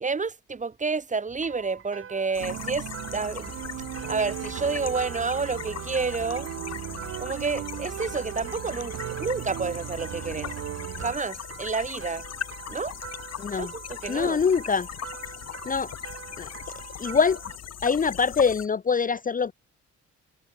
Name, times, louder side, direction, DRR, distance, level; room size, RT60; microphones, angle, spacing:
voice 1, 0.0-3.5 4.1-6.5 7.2-10.5 11.0-12.2 12.7-12.9 13.5-14.4, right 4 dB, 25° right, 1.3 m, -30 dB
sound 1, 1.4-17.6, right 7 dB, 45° right, 2.2 m, -44 dB
sound 2, 2.3-18.7, left 10 dB, 55° left, 1.8 m, -40 dB
sound 3, 2.4-11.2, right 12 dB, 60° right, 0.9 m, -37 dB
voice 2, 13.4-13.7 14.1-14.9 15.7-15.9 16.4-16.5 17.0-17.4 17.8-19.5, left 5 dB, 30° left, 0.7 m, -24 dB
cardioid pair, 90°, 30 cm